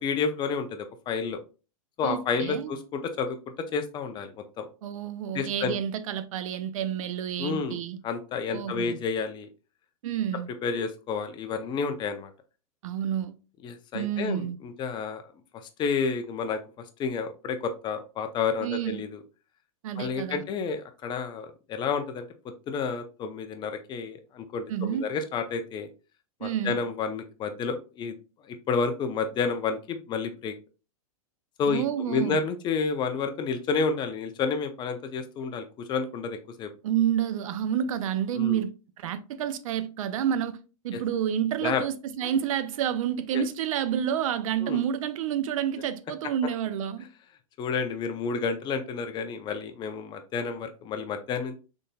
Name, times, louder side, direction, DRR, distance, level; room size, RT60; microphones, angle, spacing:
voice 1, 0.0-1.4 2.0-4.7 5.3-5.8 7.4-7.8 8.0-9.5 10.6-12.3 13.6-15.3 15.8-16.6 17.0-19.2 20.0-22.2 22.7-25.9 26.4-28.1 28.4-30.5 31.6-36.7 38.3-38.6 40.9-41.0 41.6-41.8 42.2-42.3 43.3-43.4 44.6-44.8 47.6-51.6, left 5 dB, 25° left, 0.5 m, -30 dB
voice 2, 2.0-2.7 4.8-8.0 8.5-9.0 10.0-10.5 12.8-13.3 13.9-14.6 18.6-19.0 19.8-20.4 24.7-25.1 26.4-26.8 31.7-32.4 36.8-40.6 40.8-47.1, right 9 dB, 70° right, 0.5 m, -29 dB
3.9 x 3.8 x 2.2 m
hypercardioid pair, 130°, 18 cm